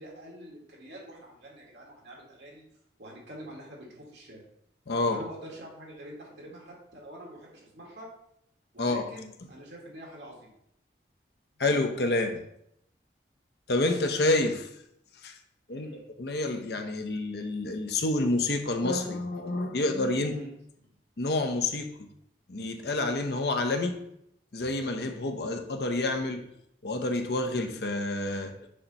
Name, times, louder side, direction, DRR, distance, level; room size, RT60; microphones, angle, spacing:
voice 1, 0.0-2.6 3.0-4.4 5.1-8.1 8.7-10.5 15.7-16.0 20.2-20.5 20.8-20.9, right 1 dB, 80° right, 1.9 m, -45 dB
voice 2, 4.9-5.2 8.8-9.1 11.6-12.4 13.7-14.7 15.2-15.4 15.7-15.9 16.2-20.3 21.2-22.1 22.5-24.0 24.5-26.4 26.8-28.6, left 2 dB, 65° left, 0.7 m, -28 dB
6.4 x 2.9 x 5.3 m
head